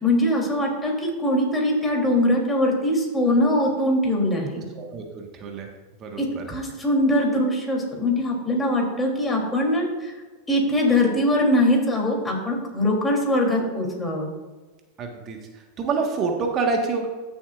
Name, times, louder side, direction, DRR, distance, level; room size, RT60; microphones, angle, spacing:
voice 1, 0.0-4.6 6.2-10.1 10.5-14.3, left 1 dB, 10° left, -1 dB, 3.0 m, -22 dB
voice 2, 4.7-5.7 6.0-6.4 15.0-15.4 15.8-17.1, right 4 dB, 40° right, 2 dB, 1.4 m, -27 dB
15.0 x 7.1 x 2.5 m, 1.3 s
hypercardioid pair, 115°, 0 cm